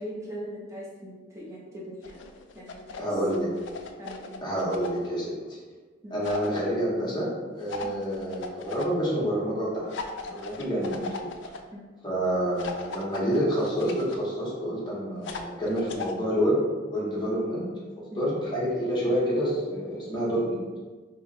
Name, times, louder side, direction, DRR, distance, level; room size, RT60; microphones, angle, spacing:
voice 1, 0.0-2.3 2.5-3.1 4.0-4.4 6.0-6.2 7.8-8.0 11.7-11.9 18.1-18.3, equal, 15° right, -5 dB, 0.7 m, -40 dB
sound 1, 2.0-3.1 3.3-5.1 6.2-6.6 7.7-8.9 9.9-11.6 12.6-14.2 15.2-16.1, left 4 dB, 70° left, 0.3 m, -38 dB
voice 2, 3.0-3.5 4.4-5.6 6.1-9.9 10.2-11.3 12.0-16.6 16.9-17.7 18.2-20.6, equal, 25° left, -6 dB, 0.9 m, -28 dB
2.9 x 2.4 x 4.0 m, 1.3 s
head